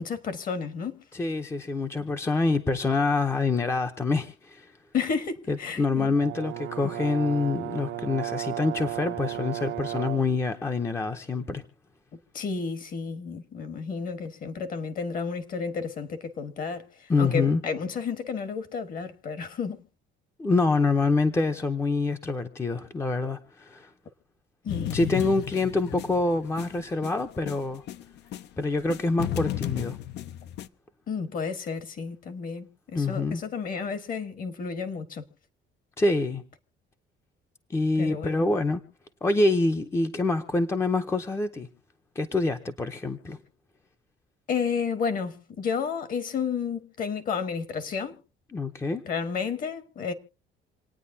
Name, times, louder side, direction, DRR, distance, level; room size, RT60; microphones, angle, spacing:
voice 1, 0.0-1.0 2.0-2.1 4.9-6.1 12.3-19.8 24.6-25.0 31.1-35.2 38.0-38.5 44.5-48.2 49.0-50.1, left 5 dB, 45° left, 1.4 m, -31 dB
voice 2, 1.1-4.7 5.5-11.6 17.1-17.6 20.4-23.9 24.9-27.8 28.6-30.0 32.9-33.4 36.0-36.4 37.7-38.8 39.2-41.7 42.2-43.4 48.5-49.0, left 3 dB, 15° left, 0.6 m, -26 dB
Brass instrument, 6.2-10.4, right 14 dB, 80° right, 0.8 m, -34 dB
sound 1, 24.7-28.5 28.8-30.7, left 12 dB, 60° left, 0.6 m, -34 dB
27.5 x 9.3 x 2.7 m
cardioid pair, 175°, 20 cm